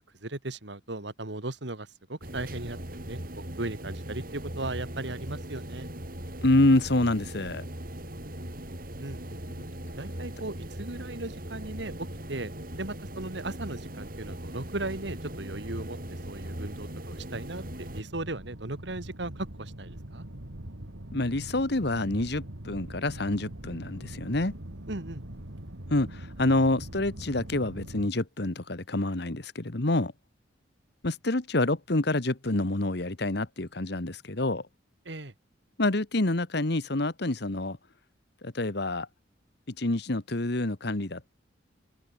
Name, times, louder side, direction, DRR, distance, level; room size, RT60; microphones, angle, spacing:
voice 1, 0.0-3.2 3.6-5.9 9.0-9.4 10.0-12.5 12.8-20.3 24.9-25.2 35.1-35.3, right 2 dB, 65° right, 2.0 m, -37 dB
sound 1, 2.2-18.0, right 1 dB, 50° right, 5.5 m, -39 dB
voice 2, 6.4-7.6 21.1-24.5 25.9-30.1 31.0-34.6 35.8-37.8 38.4-39.1 39.7-41.3, left 2 dB, 60° left, 1.5 m, -27 dB
sound 2, 14.2-28.1, right 1 dB, 85° right, 3.0 m, -43 dB
open air
head